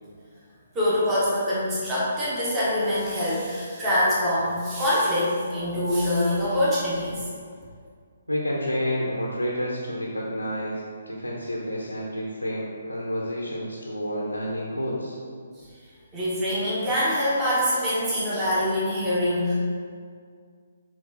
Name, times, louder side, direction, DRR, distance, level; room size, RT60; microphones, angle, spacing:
voice 1, 0.7-7.3 16.1-19.5, left 1 dB, 15° right, -9 dB, 1.3 m, -24 dB
voice 2, 8.3-15.2, equal, 90° left, -3 dB, 0.9 m, -29 dB
6.8 x 3.3 x 4.1 m, 2.1 s
figure-of-eight pair, 135°, 0 cm